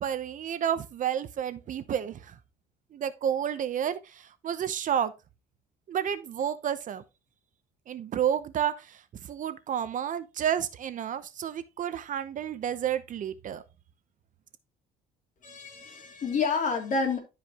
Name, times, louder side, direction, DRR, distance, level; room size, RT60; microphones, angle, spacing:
voice 1, 0.0-2.4 2.9-5.1 5.9-7.0 7.9-13.6, right 9 dB, 50° right, 0.8 m, -31 dB
voice 2, 15.4-17.2, left 4 dB, 50° left, 3.1 m, -29 dB
11.5 x 5.0 x 2.9 m
cardioid pair, 110°, 17 cm